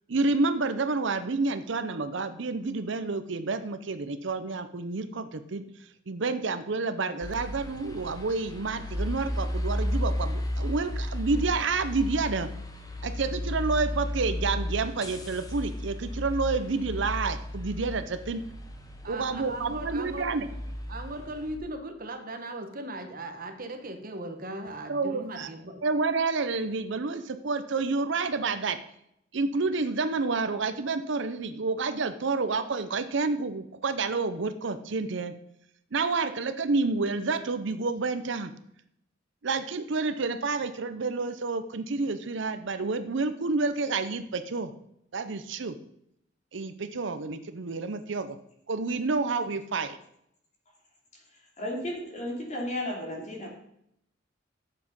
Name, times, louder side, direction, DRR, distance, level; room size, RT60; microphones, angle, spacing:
voice 1, 0.1-5.6 6.1-12.5 13.0-18.4 19.1-20.5 24.9-25.5 25.8-28.8 29.3-35.3 35.9-38.5 39.4-44.7 45.1-45.8 46.5-48.4 48.7-50.0, right 3 dB, 65° right, 11 dB, 0.7 m, -29 dB
sound 1, 7.2-21.6, left 1 dB, 20° left, 1.1 m, -34 dB
voice 2, 19.0-20.3 20.9-25.8, right 1 dB, 45° right, 6 dB, 1.2 m, -38 dB
voice 3, 51.6-53.5, left 1 dB, 40° left, -1 dB, 2.7 m, -33 dB
9.1 x 7.2 x 5.4 m, 0.74 s
head